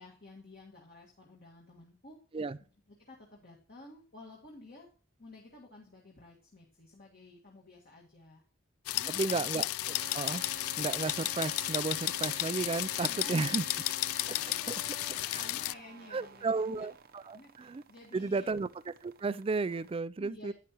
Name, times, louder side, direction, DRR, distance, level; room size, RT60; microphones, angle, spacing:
voice 1, 0.0-2.2 3.1-4.9 5.2-8.4 8.9-9.4 13.0-13.6 14.2-14.6 15.1-16.9 17.3-18.6 20.2-20.5, left 2 dB, 45° left, 1.7 m, -53 dB
sound 1, 8.9-15.7, left 17 dB, 90° left, 0.3 m, -33 dB
voice 2, 9.1-9.7 10.1-10.4 10.8-13.7 14.7-14.8 15.3-15.5 16.1-17.8 18.1-18.7 19.0-20.5, right 4 dB, 25° right, 0.3 m, -33 dB
sound 2, 9.9-20.0, right 5 dB, 45° right, 0.7 m, -50 dB
10.5 x 9.3 x 2.9 m
head